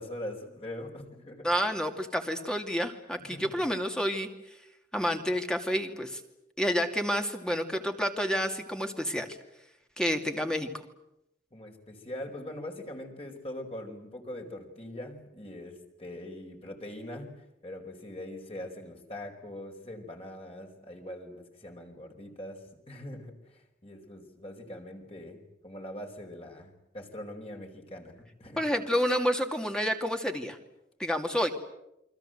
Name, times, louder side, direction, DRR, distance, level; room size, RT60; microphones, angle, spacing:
voice 1, 0.0-1.4 3.2-3.4 11.5-28.6, left 1 dB, 30° left, 3 dB, 4.9 m, -42 dB
voice 2, 1.4-4.3 4.9-6.2 6.6-9.4 10.0-10.7 28.6-30.6 31.0-31.5, equal, 5° left, 5 dB, 2.5 m, -29 dB
29.0 x 24.0 x 8.0 m, 0.85 s
head